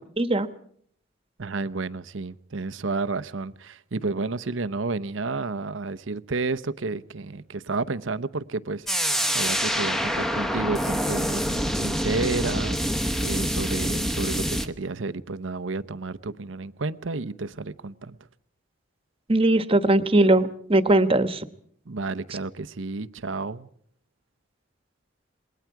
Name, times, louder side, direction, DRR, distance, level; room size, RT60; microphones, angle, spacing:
voice 1, 0.2-0.5 19.3-21.4, right 2 dB, 30° right, 1.2 m, -20 dB
voice 2, 1.4-18.2 21.9-23.7, right 3 dB, 85° right, 0.8 m, -31 dB
sound 1, 8.9-14.7, equal, ahead, 1.0 m, -26 dB
27.5 x 21.5 x 4.7 m
head